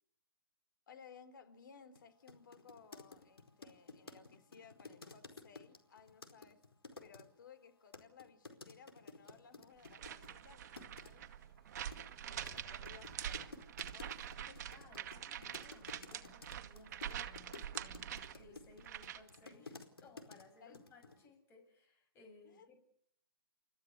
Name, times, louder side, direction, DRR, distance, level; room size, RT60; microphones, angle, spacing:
voice 1, 0.9-6.6 7.0-11.3 12.2-13.6 13.9-14.7 20.6-20.8 22.4-22.7, left 6 dB, 55° left, 10 dB, 4.1 m, -60 dB
sound 1, 2.0-2.1 2.3-7.2 7.9-10.4 10.8-11.1 11.8-20.5 20.7-21.2, left 3 dB, 85° left, 4.6 m, -53 dB
Sliding door, 9.0-14.6, left 1 dB, ahead, 6.9 m, -66 dB
sound 2, 9.8-19.4, right 10 dB, 45° right, 1.9 m, -45 dB
voice 2, 14.7-22.8, left 3 dB, 20° left, 6 dB, 7.2 m, -62 dB
30.0 x 15.0 x 8.2 m, 0.66 s
hypercardioid pair, 140°, 12 cm